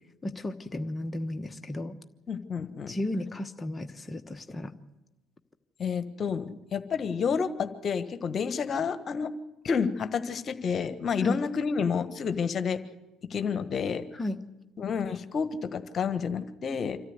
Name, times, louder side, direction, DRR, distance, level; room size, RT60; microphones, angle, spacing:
voice 1, 0.2-2.0 2.9-4.7 11.2-11.4 14.1-14.4, left 1 dB, 20° left, 6 dB, 1.2 m, -34 dB
voice 2, 2.3-3.0 5.8-9.3 9.6-12.8 13.3-14.0 14.8-17.0, left 6 dB, 45° left, 11 dB, 1.3 m, -30 dB
26.0 x 14.0 x 8.0 m, 1.0 s
hypercardioid pair, 60°, 0 cm